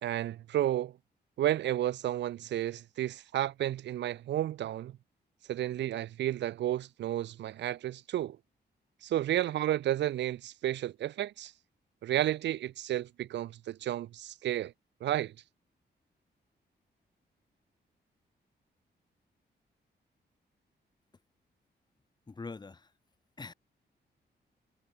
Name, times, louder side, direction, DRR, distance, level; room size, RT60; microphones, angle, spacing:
voice 1, 0.0-0.9 1.4-5.0 5.5-8.4 9.0-11.5 12.0-14.7 15.0-15.3, right 12 dB, 80° right, 0.5 m, -32 dB
voice 2, 22.3-22.9 23.4-23.5, left 3 dB, 25° left, 4.8 m, -43 dB
wide cardioid pair, 165°, 18 cm